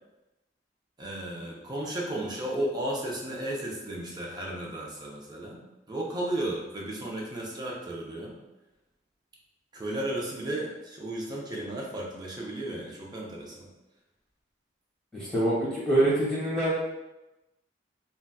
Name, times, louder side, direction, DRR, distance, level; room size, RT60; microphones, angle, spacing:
voice 1, 1.0-5.6 5.9-8.4 9.7-13.7, right 1 dB, 20° right, -3 dB, 0.5 m, -34 dB
voice 2, 15.1-16.7, right 1 dB, 5° left, -8 dB, 1.4 m, -25 dB
3.8 x 2.2 x 2.2 m, 1.0 s
head